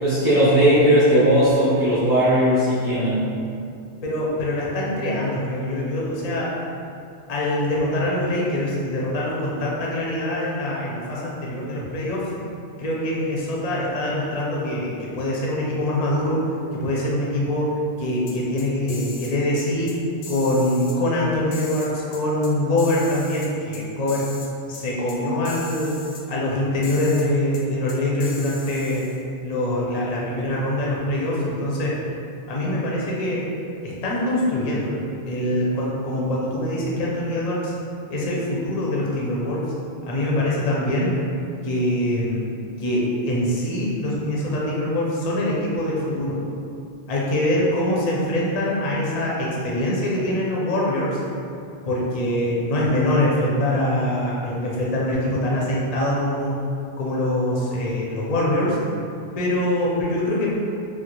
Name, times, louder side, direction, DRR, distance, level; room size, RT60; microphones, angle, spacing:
voice 1, 0.0-3.3, equal, 15° right, -13 dB, 0.6 m, -17 dB
voice 2, 4.0-6.6 7.3-12.3 12.8-16.4 16.7-20.0 20.3-24.3 24.7-29.1 29.4-32.0 32.5-33.5 33.8-37.7 38.1-39.7 40.0-41.1 41.6-42.4 42.8-46.4 47.1-51.2 51.9-56.5 57.0-58.8 59.4-60.5, left 1 dB, 50° left, -5 dB, 0.5 m, -24 dB
sound 1, 18.3-19.3 19.6-19.9 20.2-21.0 21.5-22.5 22.8-23.8 24.1-24.5 24.7-24.8 25.1-25.2 25.4-26.2 26.8-27.3 27.5-27.6 27.9-29.2, left 4 dB, 90° left, 0.9 m, -39 dB
3.0 x 2.2 x 2.9 m, 2.5 s
omnidirectional pair, 1.1 m